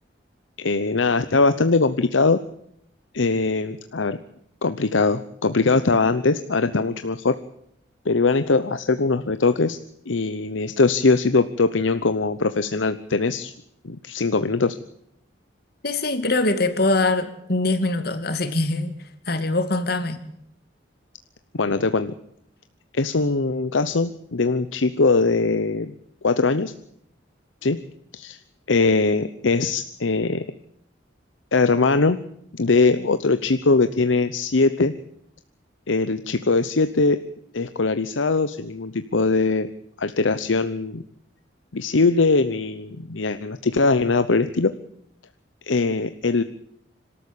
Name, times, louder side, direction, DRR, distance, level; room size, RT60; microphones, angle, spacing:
voice 1, 0.6-2.4 3.1-4.2 4.6-7.4 8.0-9.8 10.1-13.5 13.8-14.7 21.5-22.1 22.9-25.9 26.2-26.7 27.6-27.8 28.1-28.4 28.7-30.4 31.5-32.2 32.5-34.9 35.9-37.2 37.5-39.7 40.0-41.0 41.7-44.7 45.6-46.4, left 3 dB, 85° left, 11 dB, 0.9 m, -21 dB
voice 2, 15.8-18.9 19.3-20.2, left 2 dB, 55° left, 9 dB, 2.4 m, -23 dB
26.0 x 13.0 x 8.6 m, 0.73 s
head